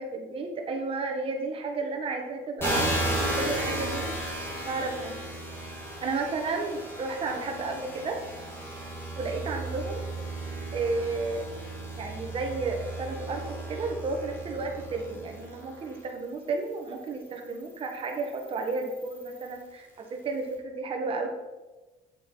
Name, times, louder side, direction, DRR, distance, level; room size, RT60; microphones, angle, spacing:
voice 1, 0.0-5.2 6.0-8.2 9.2-10.0 10.7-11.4 11.9-21.3, right 3 dB, 35° right, 2 dB, 1.3 m, -32 dB
sound 1, 2.6-16.0 16.7-19.6, right 1 dB, 15° left, 2.5 m, -35 dB
9.1 x 7.3 x 3.9 m, 1.1 s
cardioid pair, 170°, 17 cm